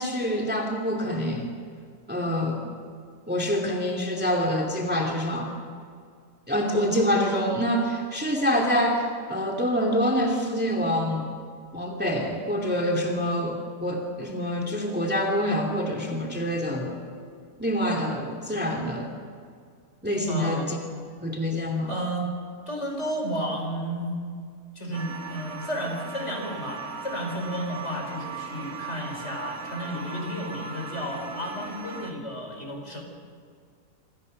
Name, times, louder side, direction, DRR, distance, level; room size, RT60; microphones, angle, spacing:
voice 1, 0.0-1.5 2.1-2.6 3.3-5.5 6.5-9.0 9.3-11.3 11.7-17.0 17.6-19.1 20.0-20.8 21.2-21.9, equal, 5° right, 1 dB, 2.7 m, -26 dB
voice 2, 20.3-20.7 21.9-22.3 22.7-24.2 24.8-33.0, equal, 45° left, 1 dB, 5.5 m, -32 dB
sound 1, 24.9-32.1, right 4 dB, 65° right, 2.5 m, -38 dB
26.5 x 26.5 x 6.6 m, 2.2 s
omnidirectional pair, 1.6 m